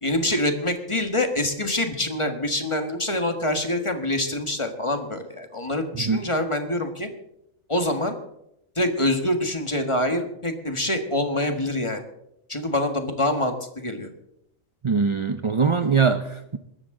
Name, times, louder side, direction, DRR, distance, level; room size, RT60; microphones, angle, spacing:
voice 1, 0.0-7.1 7.7-8.2 8.8-12.0 12.5-14.1, left 1 dB, 25° left, 6 dB, 1.6 m, -25 dB
voice 2, 14.8-16.6, right 5 dB, 35° right, 9 dB, 0.5 m, -22 dB
21.0 x 13.5 x 3.8 m, 0.80 s
omnidirectional pair, 1.4 m